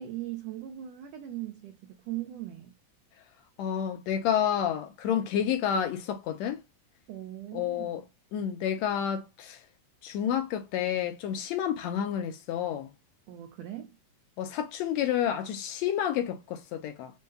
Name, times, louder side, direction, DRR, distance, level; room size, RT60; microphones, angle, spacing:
voice 1, 0.0-2.7 7.1-8.0 13.3-14.0, right 13 dB, 85° right, 1.4 m, -39 dB
voice 2, 3.6-6.6 7.5-8.0 8.3-9.6 10.0-12.9 14.4-17.1, left 9 dB, 80° left, 1.6 m, -29 dB
5.4 x 2.2 x 3.2 m
omnidirectional pair, 3.6 m